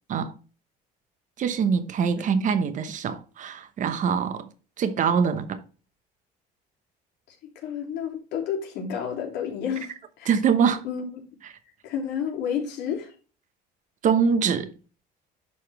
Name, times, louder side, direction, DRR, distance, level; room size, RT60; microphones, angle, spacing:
voice 1, 1.4-4.5 4.8-5.6 10.3-10.8 14.0-14.7, right 6 dB, 45° right, 1.1 m, -24 dB
voice 2, 7.3-10.3 10.8-11.0 11.8-13.1, left 8 dB, 75° left, 3.1 m, -31 dB
11.5 x 4.2 x 3.4 m
cardioid pair, 115°, 17 cm